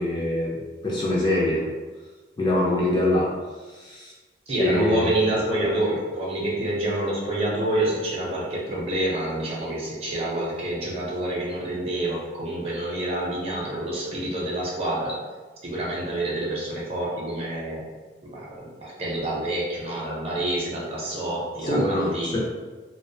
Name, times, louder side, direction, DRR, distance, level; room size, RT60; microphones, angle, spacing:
voice 1, 0.0-1.7 2.4-3.3 3.7-4.1 4.6-5.1 13.5-13.7 21.6-22.4, left 1 dB, 25° left, -4 dB, 0.4 m, -24 dB
voice 2, 4.5-15.2 15.6-17.8 18.2-22.4, right 1 dB, 35° right, -4 dB, 0.6 m, -27 dB
2.3 x 2.1 x 2.6 m, 1.3 s
head